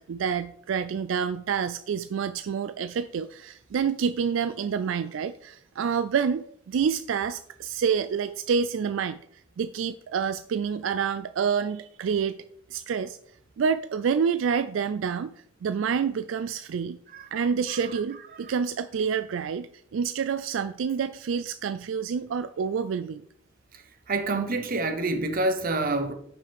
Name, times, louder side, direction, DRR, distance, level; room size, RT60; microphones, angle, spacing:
voice 1, 0.0-9.2 9.6-12.4 12.7-13.2 13.6-15.3 15.6-17.0 17.3-23.2, right 6 dB, 80° right, 0.3 m, -28 dB
voice 2, 17.1-17.4 24.1-26.1, right 2 dB, 50° right, 1.0 m, -27 dB
10.0 x 5.9 x 3.5 m
head